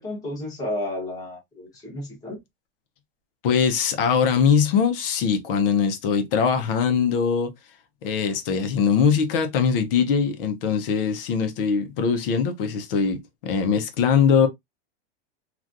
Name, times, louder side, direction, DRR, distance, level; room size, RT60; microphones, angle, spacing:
voice 1, 0.0-2.4, left 1 dB, 10° left, 1.3 m, -32 dB
voice 2, 3.4-7.5 8.0-14.5, left 6 dB, 60° left, 0.9 m, -21 dB
3.1 x 2.5 x 2.5 m
supercardioid pair, 150°, 31 cm